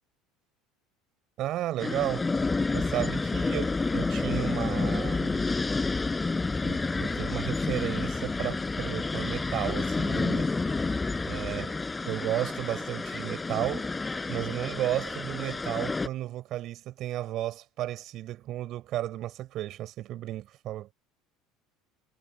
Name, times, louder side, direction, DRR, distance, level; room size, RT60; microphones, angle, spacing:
voice 1, 1.4-2.3 2.7-5.5 6.6-10.5 11.2-11.8 12.1-13.9 14.3-20.9, right 14 dB, 50° right, 5.8 m, -33 dB
sound 1, 1.8-16.1, left 3 dB, 15° left, 7.1 m, -29 dB
cardioid pair, 135°, 0 cm